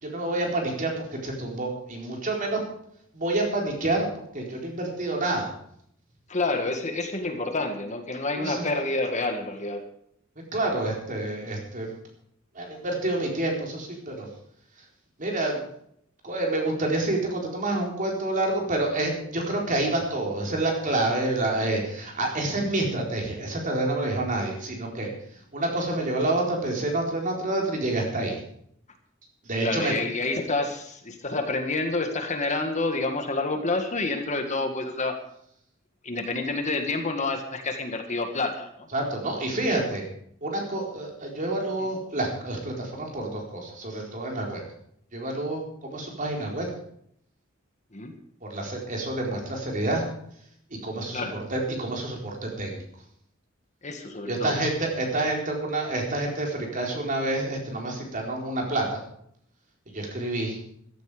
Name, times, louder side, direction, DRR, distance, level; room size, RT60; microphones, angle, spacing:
voice 1, 0.0-2.6 3.1-4.1 4.3-5.5 8.4-8.7 10.5-11.9 12.5-14.3 15.2-15.6 16.2-25.1 25.5-28.4 29.4-29.9 38.9-40.0 40.4-44.6 45.1-46.7 48.4-50.0 50.8-51.2 51.5-52.8 54.3-59.0 59.9-60.6, right 2 dB, 40° right, 0 dB, 4.2 m, -28 dB
voice 2, 6.3-9.8 29.6-35.2 36.0-38.7 47.9-48.1 51.1-51.4 53.8-54.6, left 2 dB, 35° left, 5 dB, 1.8 m, -28 dB
15.0 x 13.5 x 5.1 m, 0.69 s
head